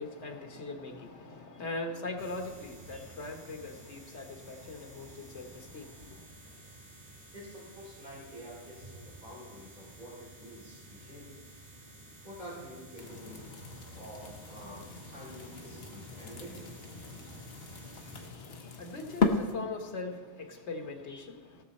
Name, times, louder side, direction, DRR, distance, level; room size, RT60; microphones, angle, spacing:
voice 1, 0.0-6.3 18.1-21.6, left 3 dB, 85° left, 4 dB, 1.5 m, -41 dB
sound 1, 2.2-18.3, right 1 dB, 85° right, 2.9 m, -52 dB
voice 2, 7.3-11.3 12.2-13.6 13.9-16.8, equal, 40° right, -6 dB, 4.2 m, -48 dB
sound 2, 13.0-19.5, left 4 dB, 65° left, 1.2 m, -36 dB
18.0 x 6.5 x 4.2 m, 1.3 s
omnidirectional pair, 1.1 m